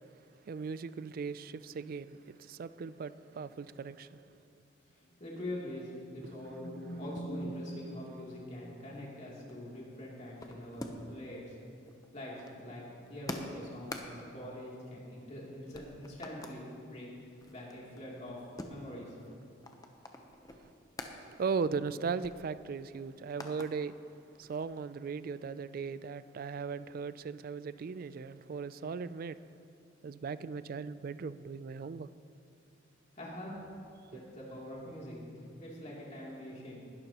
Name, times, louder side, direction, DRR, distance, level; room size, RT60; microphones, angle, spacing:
voice 1, 0.4-4.3 6.2-6.3 7.4-7.6 20.5-20.7 21.2-24.0 24.4-29.4 30.0-32.1 34.1-34.2, right 5 dB, 50° right, 0.3 m, -38 dB
voice 2, 4.9-11.6 12.1-12.8 13.1-17.2 17.5-18.4 18.6-19.2 33.1-33.5 34.1-35.2 35.6-36.8, left 1 dB, 35° left, 2.9 m, -44 dB
sound 1, 5.8-9.2, equal, 80° left, 1.7 m, -44 dB
sound 2, 9.4-11.3 11.5-15.4 15.7-16.6 17.1-21.2 21.6-21.7 22.0-23.7 24.1-24.9, left 1 dB, 20° left, 0.8 m, -47 dB
19.5 x 12.0 x 3.0 m
head